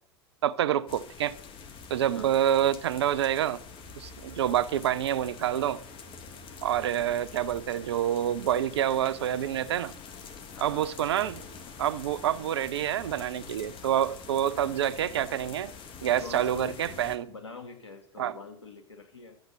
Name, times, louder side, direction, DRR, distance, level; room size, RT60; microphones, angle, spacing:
voice 1, 0.4-1.4 1.9-3.6 4.0-5.8 6.6-9.9 10.6-11.4 11.8-15.7 16.0-17.3 18.2-18.3, right 11 dB, 70° right, 0.5 m, -27 dB
sound 1, 0.9-17.2, left 5 dB, 35° left, 1.7 m, -46 dB
voice 2, 10.5-10.9 16.2-19.4, left 4 dB, 85° left, 2.0 m, -45 dB
12.0 x 7.9 x 6.7 m
figure-of-eight pair, 85°, 14 cm